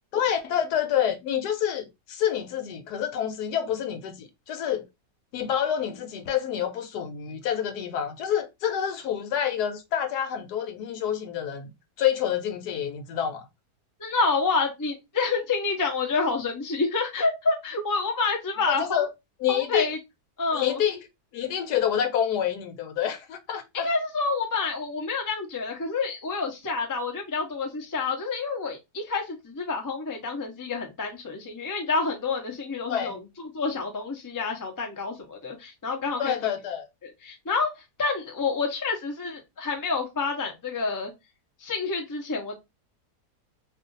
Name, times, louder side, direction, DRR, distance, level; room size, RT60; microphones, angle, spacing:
voice 1, 0.1-4.9 5.3-11.7 12.0-13.4 18.7-19.1 19.4-19.9 20.5-21.0 21.3-23.9 32.9-33.2 36.2-36.9, left 9 dB, 75° left, 1.2 m, -27 dB
voice 2, 14.0-19.0 19.5-20.0 20.4-20.8 23.7-36.5 37.0-37.7 38.0-41.1 41.6-42.5, left 4 dB, 30° left, 0.3 m, -28 dB
2.7 x 2.5 x 3.8 m
omnidirectional pair, 1.8 m